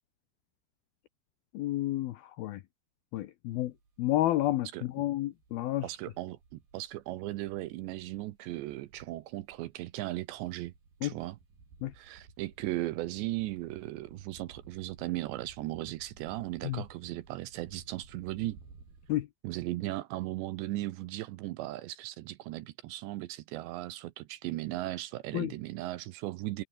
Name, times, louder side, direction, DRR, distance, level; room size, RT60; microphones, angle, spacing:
voice 1, 1.5-2.6 3.1-3.7 4.0-4.7 5.0-5.8 11.0-11.1 11.8-11.9 16.6-16.8 19.1-19.3 25.3-25.5, left 15 dB, 85° left, 2.1 m, -30 dB
sound 1, 3.5-19.2, right 4 dB, 50° right, 8.9 m, -57 dB
voice 2, 5.8-10.7 11.0-11.4 11.9-18.6 19.4-26.6, right 17 dB, 80° right, 2.8 m, -37 dB
omnidirectional pair, 5.7 m